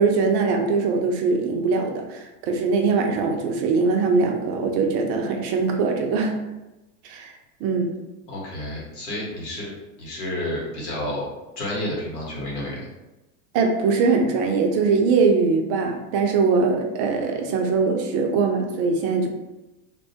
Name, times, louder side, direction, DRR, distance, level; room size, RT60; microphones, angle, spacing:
voice 1, 0.0-6.3 7.0-7.3 7.6-7.9 13.5-19.3, right 4 dB, 45° right, 2 dB, 0.5 m, -22 dB
voice 2, 8.3-11.3 11.6-12.9, left 1 dB, 85° left, -4 dB, 1.3 m, -30 dB
2.6 x 2.2 x 2.7 m, 1.0 s
hypercardioid pair, 110°, 45 cm